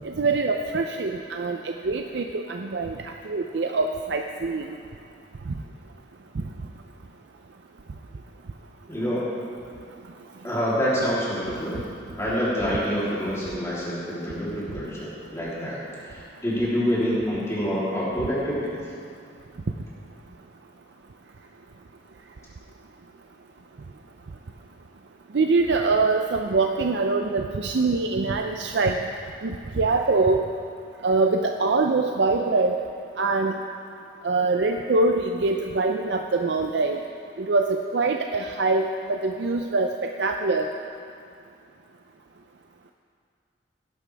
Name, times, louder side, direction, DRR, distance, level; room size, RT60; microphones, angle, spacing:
voice 1, 0.0-4.7 25.3-29.1 29.4-30.5 31.0-32.8 33.2-33.6 34.2-37.0 37.4-40.7, right 3 dB, 70° right, 4 dB, 0.5 m, -24 dB
voice 2, 8.9-9.3 10.4-11.8 12.2-15.8 16.0-18.8, equal, 15° left, -9 dB, 3.3 m, -26 dB
17.0 x 11.0 x 3.5 m, 2.4 s
head